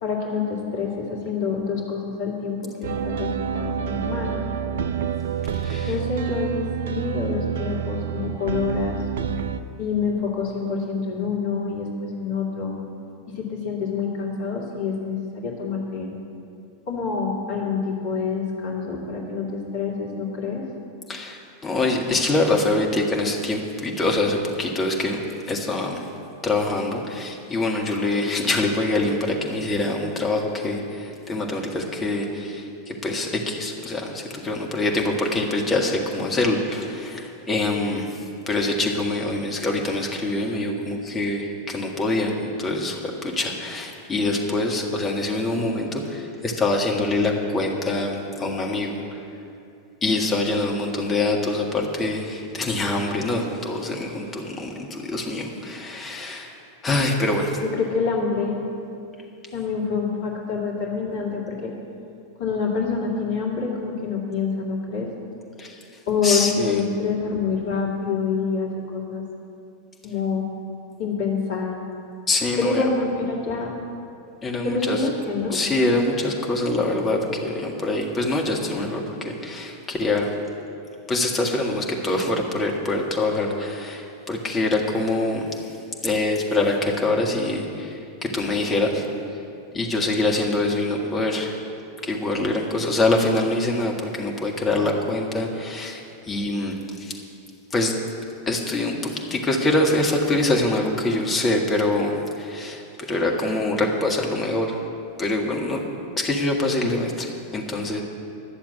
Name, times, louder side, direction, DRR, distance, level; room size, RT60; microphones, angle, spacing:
voice 1, 0.0-4.3 5.9-9.0 9.8-12.7 13.4-16.1 16.9-20.6 57.6-58.6 59.5-61.7 62.4-65.1 66.1-69.2 70.0-70.5 71.0-71.7 72.6-73.7 74.6-75.6, left 5 dB, 50° left, -2 dB, 2.4 m, -26 dB
sound 1, 2.8-9.6, right 8 dB, 60° right, 0.5 m, -28 dB
voice 2, 5.5-6.0 21.1-25.2 25.5-26.1 26.4-49.2 50.0-56.5 56.8-57.6 65.6-66.8 72.3-72.9 74.4-75.1 75.5-80.3 81.1-89.1 89.7-91.6 92.0-97.2 97.7-98.0 98.5-104.8 105.2-105.8 106.2-108.0, left 2 dB, 20° left, 0 dB, 1.8 m, -25 dB
12.0 x 7.1 x 8.4 m, 2.6 s
figure-of-eight pair, 90°, 0 cm